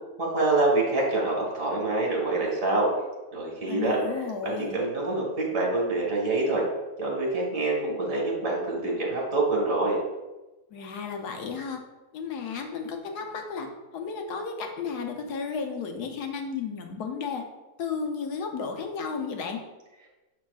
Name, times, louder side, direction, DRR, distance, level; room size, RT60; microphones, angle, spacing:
voice 1, 0.2-2.9 3.3-4.0 4.4-6.6 7.0-10.0, right 2 dB, 55° right, -2 dB, 2.0 m, -26 dB
voice 2, 3.7-4.8 10.7-11.8 12.1-13.7 13.9-17.4 17.8-19.6, left 5 dB, 75° left, 4 dB, 1.3 m, -33 dB
7.0 x 5.7 x 2.4 m, 1.1 s
omnidirectional pair, 1.7 m